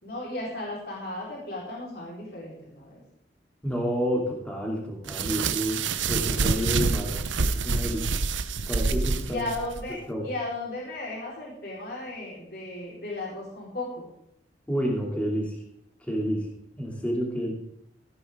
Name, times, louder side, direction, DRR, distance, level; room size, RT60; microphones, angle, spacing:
voice 1, 0.0-3.0 9.3-14.1, left 2 dB, 55° left, -4 dB, 4.3 m, -35 dB
voice 2, 3.6-8.1 8.7-9.4 10.1-10.2 14.7-15.6 16.0-16.5 16.8-17.5, equal, 5° left, -2 dB, 2.7 m, -29 dB
sound 1, 5.1-9.8, right 4 dB, 90° right, 0.8 m, -27 dB
15.5 x 9.5 x 3.7 m, 0.76 s
head